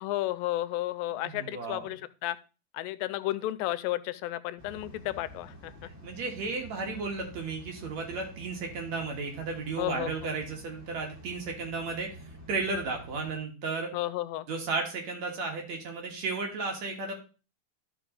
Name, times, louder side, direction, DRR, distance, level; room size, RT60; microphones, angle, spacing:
voice 1, 0.0-2.4 2.7-5.7 9.8-10.1 13.9-14.5, left 15 dB, 90° left, 14 dB, 2.3 m, -32 dB
voice 2, 1.2-1.9 6.0-12.2 12.5-13.9 14.5-17.1, right 4 dB, 55° right, 2 dB, 2.6 m, -34 dB
sound 1, 4.6-13.4, equal, 5° right, 2.0 m, -49 dB
12.0 x 5.3 x 3.8 m, 0.33 s
omnidirectional pair, 4.0 m